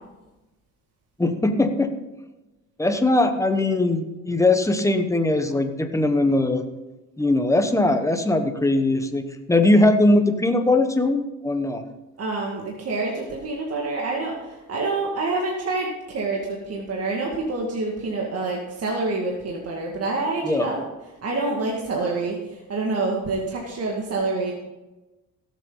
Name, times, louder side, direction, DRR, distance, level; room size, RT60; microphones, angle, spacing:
voice 1, 1.2-1.9 2.8-6.6 7.2-11.8 20.4-20.7, left 2 dB, 10° left, 7 dB, 1.3 m, -20 dB
voice 2, 12.2-20.8 21.2-24.5, right 3 dB, 55° right, -1 dB, 2.0 m, -27 dB
17.0 x 7.6 x 3.9 m, 1.1 s
cardioid pair, 90°, 30 cm